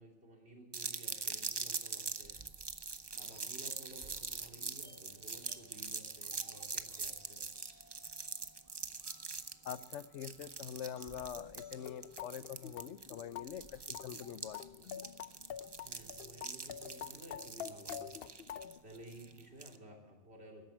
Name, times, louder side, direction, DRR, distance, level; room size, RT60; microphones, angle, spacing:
voice 1, 0.0-2.4 3.1-7.4 14.6-14.9 15.8-18.6 18.8-20.6, right 1 dB, 65° right, 0 dB, 3.4 m, -55 dB
sound 1, 0.7-19.8, right 4 dB, 30° right, 0.5 m, -43 dB
sound 2, 3.3-13.3, equal, 15° left, 4.5 m, -66 dB
voice 2, 9.6-14.6, left 9 dB, 85° left, 16 dB, 1.0 m, -44 dB
sound 3, 11.3-18.8, left 9 dB, 60° left, 0.8 m, -47 dB
13.5 x 10.5 x 7.9 m, 1.2 s
omnidirectional pair, 1.2 m